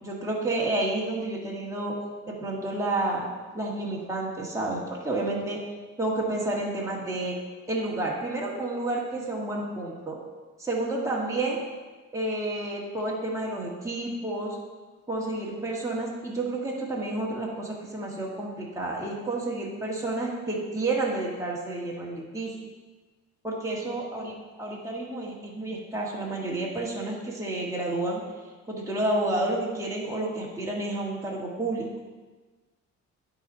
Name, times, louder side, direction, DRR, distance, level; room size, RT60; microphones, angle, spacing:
voice 1, 0.0-1.9 2.3-3.3 3.5-5.6 6.0-7.4 7.7-10.2 10.6-11.6 12.1-14.6 15.1-22.5 23.4-28.2 28.7-31.9, right 2 dB, 10° right, -5 dB, 2.0 m, -30 dB
10.0 x 4.3 x 5.6 m, 1.3 s
cardioid pair, 90°, 30 cm